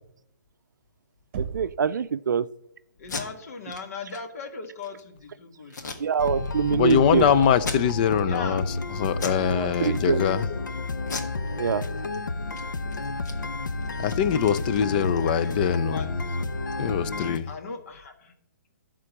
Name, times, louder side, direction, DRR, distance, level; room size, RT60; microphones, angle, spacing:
Knock, 1.3-2.0, right 6 dB, 35° right, 1.1 m, -34 dB
voice 1, 1.4-2.5 6.0-7.3 9.3-10.3 11.6-11.8, right 7 dB, 75° right, 0.5 m, -25 dB
Packing tape duct tape, 3.0-3.2 3.7-3.8 4.1-4.2 4.6-5.0 5.7-6.5 6.9-7.0 7.5-8.2 8.6-8.8 9.1-9.4 9.8-10.4 11.0-12.2 12.4-12.6 12.9-15.5, left 4 dB, 65° left, 1.7 m, -37 dB
voice 2, 3.0-5.9 8.3-8.6 15.2-16.1 17.5-18.3, left 4 dB, 50° left, 1.6 m, -38 dB
sound 1, 6.2-17.4, left 3 dB, 90° left, 0.7 m, -31 dB
voice 3, 6.7-10.4 14.0-16.2 16.8-17.5, left 8 dB, 25° left, 0.4 m, -23 dB
11.0 x 3.8 x 7.1 m
hypercardioid pair, 155°, 10 cm